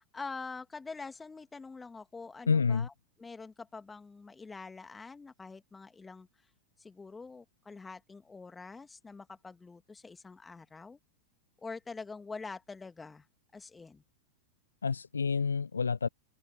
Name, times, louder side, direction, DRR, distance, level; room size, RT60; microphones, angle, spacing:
voice 1, 0.0-2.9 3.2-6.3 6.8-11.0 11.6-13.3 13.5-14.0, left 4 dB, 10° left, 2.5 m, -45 dB
voice 2, 2.5-2.9 14.8-16.1, left 5 dB, 75° left, 0.8 m, -28 dB
figure-of-eight pair, 90°, 0 cm